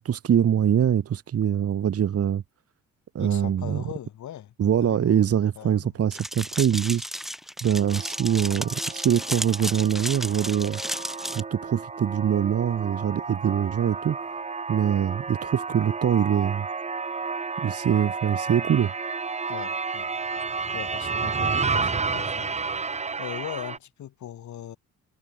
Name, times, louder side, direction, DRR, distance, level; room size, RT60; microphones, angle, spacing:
voice 1, 0.0-2.4 3.2-3.8 4.6-7.1 7.6-10.8 11.3-14.2 14.7-16.7 17.6-18.9, right 9 dB, 50° right, 1.7 m, -23 dB
voice 2, 3.2-5.2 5.6-5.9 19.5-20.1 20.7-22.8 23.2-24.8, left 11 dB, 70° left, 5.1 m, -40 dB
sound 1, 6.1-11.4, equal, ahead, 4.0 m, -33 dB
sound 2, 7.8-23.8, right 4 dB, 20° right, 1.0 m, -31 dB
cardioid pair, 90°, 30 cm